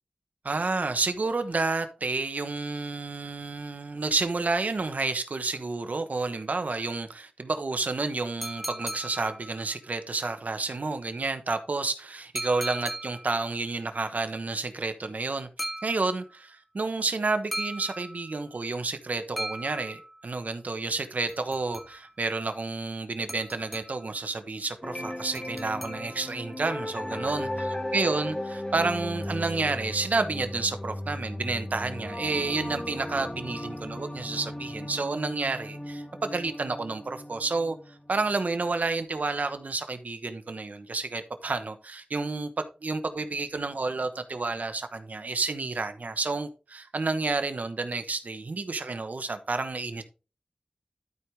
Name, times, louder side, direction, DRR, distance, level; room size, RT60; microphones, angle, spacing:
voice 1, 0.4-15.5 15.8-27.5 27.9-50.0, right 3 dB, 85° right, 1.1 m, -30 dB
sound 1, 8.4-9.9 12.4-13.5 15.6-16.5 17.5-18.5 19.4-20.4 21.3-22.3 23.3-24.2 25.3-26.4, right 1 dB, ahead, 1.8 m, -38 dB
sound 2, 24.8-38.8, left 1 dB, 30° left, 1.6 m, -36 dB
12.5 x 4.8 x 3.6 m
wide cardioid pair, 50°, 3 cm